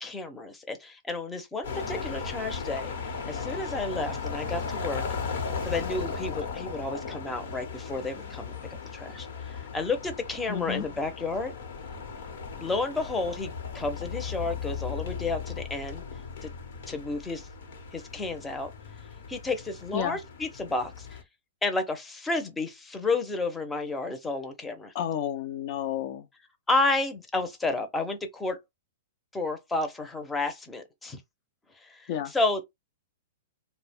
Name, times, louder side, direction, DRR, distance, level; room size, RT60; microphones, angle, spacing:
voice 1, 0.0-2.9 3.3-5.0 5.6-8.5 8.9-11.5 12.6-16.0 16.4-16.5 16.9-17.5 17.9-18.7 19.3-21.2 21.6-24.9 26.7-28.6 29.3-31.2 31.8-32.6, left 3 dB, 10° left, 0.6 m, -31 dB
sound 1, 1.6-21.2, left 5 dB, 70° left, 0.9 m, -37 dB
voice 2, 10.5-10.9 19.9-20.2 24.9-26.3 32.1-32.3, left 10 dB, 50° left, 0.4 m, -31 dB
2.3 x 2.1 x 3.4 m
hypercardioid pair, 125°, 0 cm